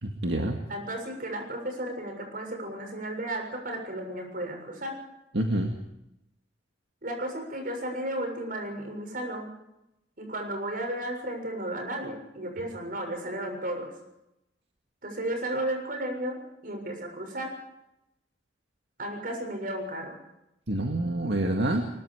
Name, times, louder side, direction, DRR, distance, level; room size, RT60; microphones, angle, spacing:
voice 1, 0.0-0.6 5.3-5.7 20.7-21.9, right 1 dB, 75° right, 3 dB, 2.1 m, -27 dB
voice 2, 0.7-5.0 7.0-9.5 10.2-13.9 15.0-17.6 19.0-20.2, right 1 dB, 50° right, 4 dB, 7.1 m, -34 dB
24.0 x 21.5 x 5.0 m, 0.86 s
head